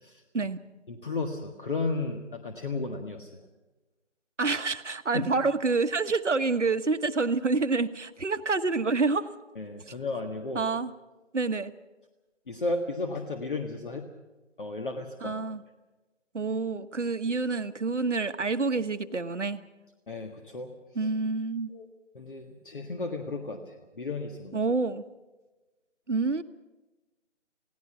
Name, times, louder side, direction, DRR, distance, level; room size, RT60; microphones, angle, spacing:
voice 1, 0.9-3.4 5.1-5.3 9.6-10.6 12.5-14.1 14.6-15.4 20.1-20.7 21.7-21.9 22.2-24.6, left 3 dB, 45° left, 5 dB, 1.7 m, -34 dB
voice 2, 4.4-9.3 10.5-10.9 11.3-11.7 15.2-15.6 16.3-19.6 20.9-21.7 24.5-25.0 26.1-26.4, right 3 dB, 75° right, 10 dB, 1.4 m, -27 dB
27.5 x 17.5 x 5.8 m, 1.1 s
figure-of-eight pair, 160°, 36 cm